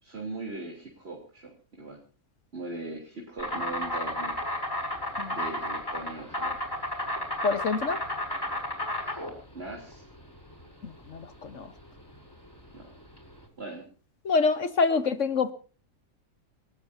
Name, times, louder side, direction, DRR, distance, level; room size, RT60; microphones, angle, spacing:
voice 1, 0.0-2.0 2.5-4.4 5.3-6.6 9.0-9.3 9.5-10.0 12.7-12.9 13.6-13.9, right 2 dB, 45° right, 0 dB, 3.6 m, -40 dB
Insect, 3.4-13.4, left 1 dB, 15° left, 5.9 m, -33 dB
voice 2, 7.4-8.0 10.8-11.7 14.2-15.5, left 4 dB, 60° left, 12 dB, 1.4 m, -26 dB
28.5 x 13.0 x 2.7 m, 0.38 s
omnidirectional pair, 1.5 m